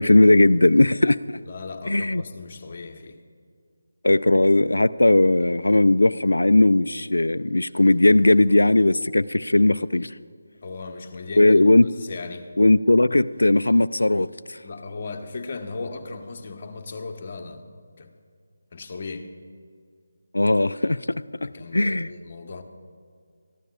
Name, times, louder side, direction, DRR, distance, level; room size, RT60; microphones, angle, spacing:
voice 1, 0.0-1.4 1.9-2.2 4.0-10.1 11.4-11.9 12.6-14.6 20.3-21.1 21.4-22.1, left 2 dB, 85° left, 13 dB, 0.3 m, -18 dB
voice 2, 1.5-3.2 10.6-11.7 12.0-12.6 14.6-18.1 18.7-19.3 21.4-22.6, left 3 dB, 40° left, 3 dB, 1.2 m, -37 dB
22.0 x 14.0 x 2.4 m, 2.2 s
figure-of-eight pair, 160°, 0 cm